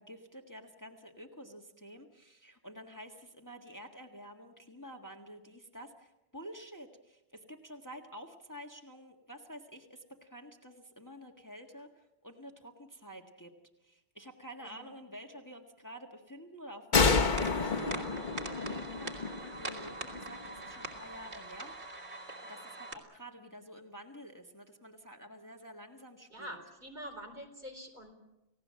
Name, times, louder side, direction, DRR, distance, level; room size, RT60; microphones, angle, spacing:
voice 1, 0.0-13.5 13.8-21.7 22.5-26.6, equal, 15° left, 2 dB, 1.6 m, -49 dB
sound 1, 16.9-20.5, left 4 dB, 45° left, 1.2 m, -30 dB
sound 2, 17.2-22.9, right 2 dB, 80° right, 3.1 m, -43 dB
voice 2, 26.3-28.1, equal, 45° right, 3 dB, 4.3 m, -45 dB
29.5 x 17.5 x 7.6 m, 0.95 s
omnidirectional pair, 1.1 m